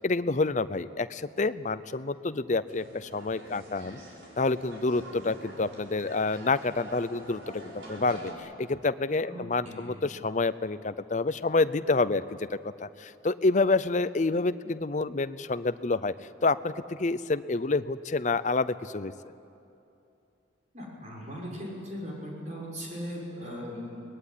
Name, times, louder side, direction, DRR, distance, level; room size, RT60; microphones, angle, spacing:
voice 1, 0.0-4.0 4.4-16.1 16.4-19.1, left 3 dB, 40° left, 14 dB, 0.6 m, -28 dB
sound 1, 2.7-8.3, right 1 dB, 90° right, 5.2 m, -46 dB
voice 2, 9.3-10.0 20.7-24.0, equal, 40° right, -2 dB, 6.2 m, -39 dB
23.5 x 20.0 x 9.9 m, 2.7 s
head